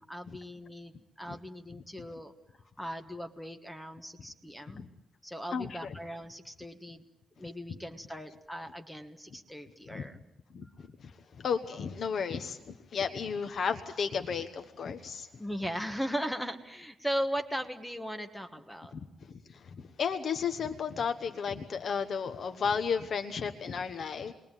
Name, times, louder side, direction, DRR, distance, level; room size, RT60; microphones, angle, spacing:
voice 1, 0.0-2.3 2.8-4.8 5.2-7.0 7.4-10.2 15.4-18.9, equal, 5° left, 6 dB, 1.5 m, -38 dB
voice 2, 5.5-5.9 7.7-7.8 9.9-10.1 10.5-11.1 11.4-15.3 18.9-24.3, left 6 dB, 50° left, 7 dB, 1.2 m, -34 dB
29.0 x 22.5 x 9.1 m, 0.92 s
wide cardioid pair, 155°, 0 cm